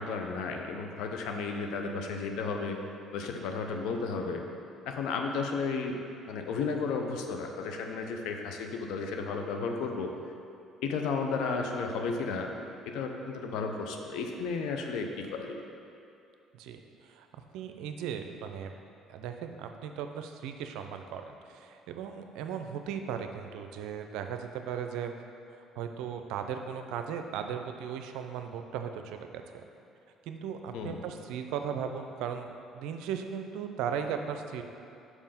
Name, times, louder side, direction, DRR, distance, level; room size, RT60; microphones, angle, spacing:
voice 1, 0.0-2.8 3.1-4.4 4.9-6.0 6.3-10.1 10.8-12.5 12.9-15.6 30.7-31.0, left 4 dB, 75° left, 3 dB, 0.7 m, -33 dB
voice 2, 16.5-18.7 19.1-25.1 25.8-29.4 30.3-34.6, right 7 dB, 75° right, 6 dB, 0.5 m, -37 dB
5.4 x 4.8 x 5.7 m, 2.6 s
hypercardioid pair, 65°, 0 cm